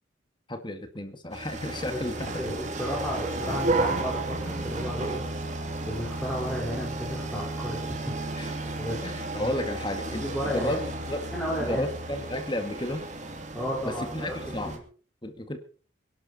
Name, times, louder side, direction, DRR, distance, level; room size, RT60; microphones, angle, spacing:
voice 1, 0.5-2.3 8.4-8.5 9.0-10.8 11.1-11.2 11.6-13.1 13.8-14.7 15.2-15.6, left 1 dB, 25° left, 7 dB, 2.0 m, -32 dB
sound 1, 1.3-14.8, right 2 dB, 40° right, 2.7 m, -33 dB
voice 2, 2.4-5.3 5.9-8.1 8.8-9.0 9.4-9.5 10.1-10.9 11.3-11.9 13.5-14.1 14.6-14.8, equal, 5° left, -4 dB, 4.7 m, -33 dB
24.0 x 11.5 x 4.2 m, 0.40 s
head